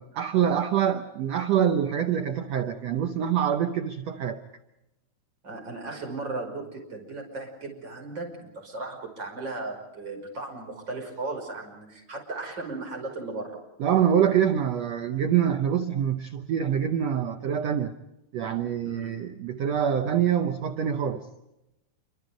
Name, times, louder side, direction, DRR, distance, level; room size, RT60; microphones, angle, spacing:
voice 1, 0.0-4.4 13.8-17.9 18.3-21.3, right 9 dB, 80° right, 7 dB, 1.5 m, -25 dB
voice 2, 5.4-13.7 18.8-19.2, right 3 dB, 25° right, 1 dB, 6.1 m, -36 dB
28.5 x 25.0 x 5.2 m, 0.93 s
omnidirectional pair, 4.5 m